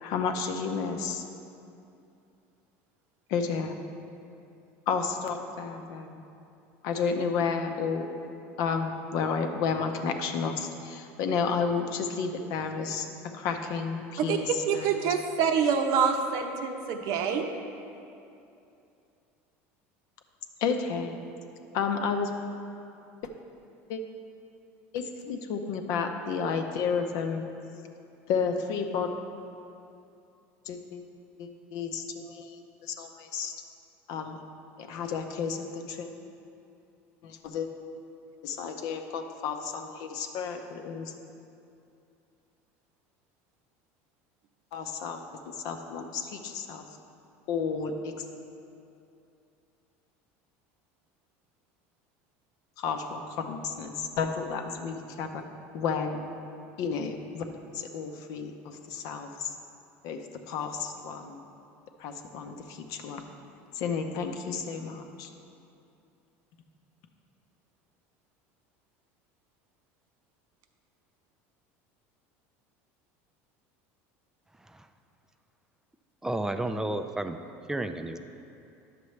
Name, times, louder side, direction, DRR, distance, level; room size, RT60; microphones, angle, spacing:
voice 1, 0.0-1.2 3.3-3.8 4.9-6.2 6.8-8.1 8.6-15.1 20.6-21.2 21.7-22.3 23.9-24.0 24.9-27.4 28.3-29.1 30.7-31.0 31.4-33.5 34.1-34.4 34.8-36.1 37.2-37.7 38.4-41.1 44.7-45.2 45.5-46.9 47.5-48.3 52.8-55.4 55.7-56.2 56.8-57.4 57.7-59.5 60.0-61.4 62.0-63.2 63.7-65.3, left 5 dB, 65° left, 5 dB, 0.7 m, -32 dB
voice 2, 14.7-17.5, right 6 dB, 65° right, 5 dB, 0.7 m, -26 dB
voice 3, 76.2-77.4 77.7-78.2, right 2 dB, 10° right, 8 dB, 0.3 m, -31 dB
10.0 x 6.8 x 3.2 m, 2.7 s
supercardioid pair, 115°, 7 cm